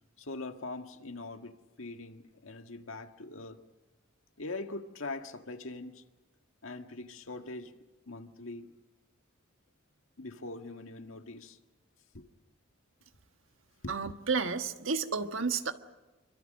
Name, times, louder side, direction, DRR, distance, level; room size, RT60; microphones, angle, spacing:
voice 1, 0.2-3.6 4.4-6.0 6.6-7.7 8.1-8.7 10.2-11.6 12.1-12.3 13.8-13.9, left 2 dB, 85° left, 1.7 m, -42 dB
voice 2, 13.9-15.7, right 5 dB, 75° right, 1.5 m, -31 dB
27.0 x 25.0 x 6.6 m
head